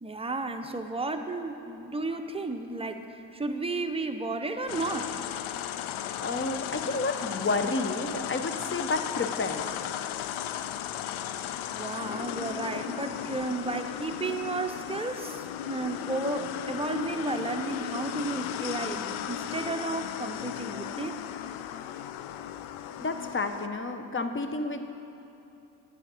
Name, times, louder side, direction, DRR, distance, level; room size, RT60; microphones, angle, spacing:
voice 1, 0.0-3.1 3.3-5.2 6.0-6.1 11.7-21.2 21.9-22.0, right 3 dB, 10° right, 5 dB, 0.7 m, -33 dB
sound 1, 4.7-23.7, left 11 dB, 75° left, 0.5 m, -35 dB
voice 2, 6.2-9.6 23.0-24.9, left 3 dB, 25° left, 7 dB, 0.8 m, -30 dB
9.8 x 5.0 x 7.7 m, 2.9 s
supercardioid pair, 50°, 48 cm